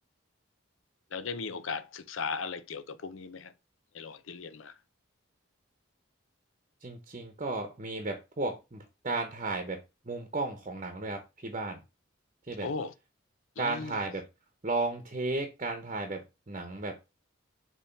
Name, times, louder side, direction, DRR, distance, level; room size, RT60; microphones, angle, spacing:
voice 1, 1.1-3.5 3.9-4.7 12.6-12.9 13.6-14.0, left 5 dB, 90° left, 0.7 m, -37 dB
voice 2, 6.8-9.8 10.1-11.8 12.5-12.7 13.6-14.2 14.6-16.9, right 3 dB, 35° right, 0.9 m, -34 dB
6.9 x 3.0 x 5.7 m
head